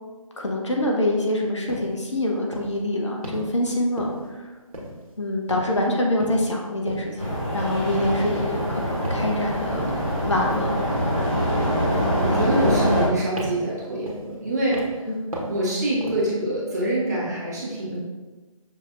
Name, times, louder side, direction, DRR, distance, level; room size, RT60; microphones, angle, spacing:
voice 1, 0.4-4.5 5.2-10.8 15.1-15.2, left 1 dB, 55° left, 0 dB, 0.8 m, -25 dB
sound 1, 1.7-1.9 2.5-2.8 3.2-3.5 4.0-4.4 4.7-5.2 5.5-5.8 6.2-6.5 6.9-7.1 7.6-7.9 8.4-8.7 9.0-9.4 9.8-10.1 10.5-10.8 11.2-11.6 11.9-12.2 12.6-13.1 13.4-13.7 14.1-14.4 14.7-15.0 15.3-15.6 16.0-16.3, right 1 dB, 80° right, 1.3 m, -35 dB
sound 2, 7.2-13.1, equal, 5° left, 1.3 m, -24 dB
voice 2, 12.2-15.1 15.5-18.0, right 1 dB, 30° right, -7 dB, 1.3 m, -26 dB
6.3 x 3.1 x 2.6 m, 1.2 s
figure-of-eight pair, 155°, 18 cm